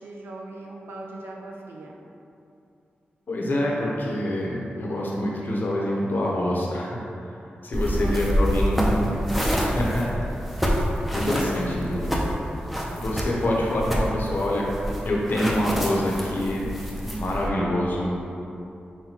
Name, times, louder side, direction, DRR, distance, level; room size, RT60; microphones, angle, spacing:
voice 1, 0.0-1.9 8.0-9.0 9.3-9.4 11.0-11.5 12.0-12.7, right 2 dB, 90° right, -2 dB, 0.5 m, -41 dB
voice 2, 3.3-9.2 9.5-10.7 11.1-12.2 13.0-14.7 15.0-16.7 17.0-18.2, left 1 dB, 60° left, -3 dB, 0.7 m, -26 dB
sound 1, 7.7-17.5, equal, ahead, 0.5 m, -27 dB
5.7 x 2.2 x 2.8 m, 2.7 s
cardioid pair, 75°, 4 cm